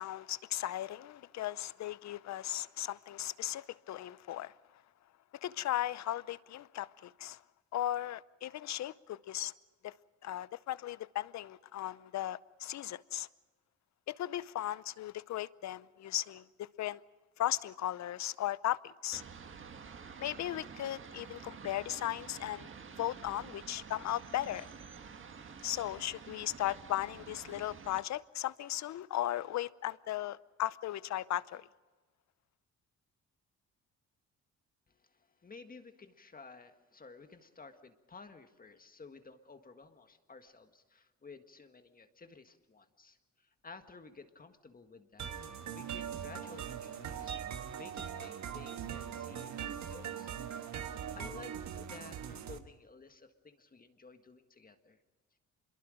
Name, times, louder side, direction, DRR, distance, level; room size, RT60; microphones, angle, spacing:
voice 1, 0.0-4.5 5.4-7.4 7.7-9.5 9.8-9.9 10.2-13.3 14.1-17.0 17.4-19.2 20.2-22.7 23.0-24.7 25.6-31.7, left 13 dB, 65° left, 0.7 m, -37 dB
sound 1, 19.1-28.0, right 6 dB, 40° right, 1.7 m, -49 dB
voice 2, 34.9-45.3 45.7-47.4 47.8-50.4 50.6-50.8 51.1-55.0, left 4 dB, 30° left, 1.8 m, -54 dB
sound 2, 45.2-52.6, right 8 dB, 65° right, 1.5 m, -41 dB
26.0 x 22.5 x 5.1 m
cardioid pair, 90°, 30 cm